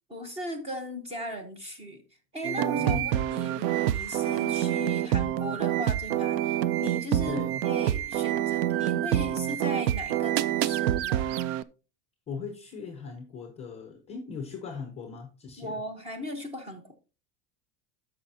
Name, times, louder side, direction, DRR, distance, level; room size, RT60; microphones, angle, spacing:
voice 1, 0.1-2.0 2.3-11.4 15.6-16.9, left 1 dB, 15° right, 0.9 m, -37 dB
sound 1, 2.4-11.6, right 12 dB, 90° right, 0.7 m, -27 dB
voice 2, 2.7-3.3 7.2-7.6 12.3-15.8, left 5 dB, 15° left, 0.6 m, -39 dB
13.5 x 5.5 x 2.7 m
supercardioid pair, 180°, 48 cm